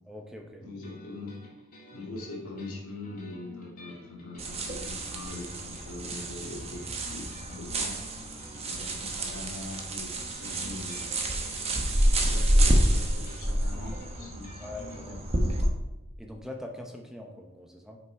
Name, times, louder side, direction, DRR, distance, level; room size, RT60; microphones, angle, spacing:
voice 1, 0.0-0.7 8.8-8.9 14.6-15.2 16.2-18.0, left 1 dB, ahead, 1 dB, 0.6 m, -42 dB
voice 2, 0.6-1.3 1.9-7.9 8.6-11.1 12.2-14.6 14.9-15.2, left 2 dB, 90° left, -2 dB, 2.2 m, -42 dB
sound 1, 0.8-15.1, left 1 dB, 40° left, 1.9 m, -51 dB
sound 2, 4.4-15.7, right 1 dB, 30° right, 0.9 m, -28 dB
6.5 x 5.3 x 4.6 m, 0.99 s
head